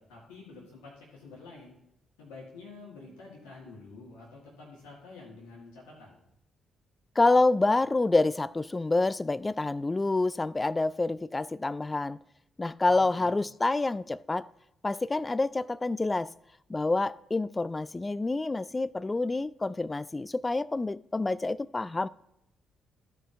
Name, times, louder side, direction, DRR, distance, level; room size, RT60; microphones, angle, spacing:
voice 1, 0.0-1.8 2.2-6.2 12.9-13.4, left 3 dB, 80° left, 2.0 m, -48 dB
voice 2, 7.2-12.2 12.6-14.5 14.8-16.3 16.7-22.1, left 2 dB, 25° left, 0.3 m, -27 dB
14.5 x 5.0 x 2.6 m
hypercardioid pair, 40°, 0 cm